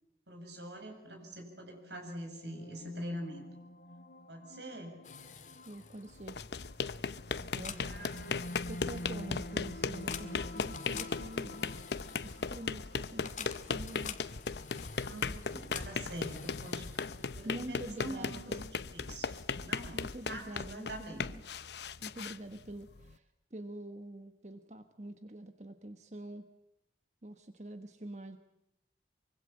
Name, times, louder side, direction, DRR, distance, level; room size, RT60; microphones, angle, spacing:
voice 1, 0.3-3.4 4.3-5.0 7.7-8.5 14.9-19.3 19.6-20.0 20.3-21.3, right 1 dB, 80° right, 4 dB, 7.7 m, -44 dB
sound 1, 1.8-17.1, left 1 dB, 60° left, 2.0 m, -48 dB
sound 2, 5.0-17.8, left 7 dB, 45° left, 1.9 m, -49 dB
voice 2, 5.7-6.4 7.5-8.1 8.7-11.7 12.2-14.2 17.4-18.6 19.9-21.4 22.0-23.2 23.5-26.5 27.2-28.4, right 1 dB, 40° right, 8 dB, 1.4 m, -46 dB
sound 3, 6.2-23.1, left 4 dB, 75° left, 0.9 m, -38 dB
25.0 x 24.5 x 8.8 m, 0.82 s
head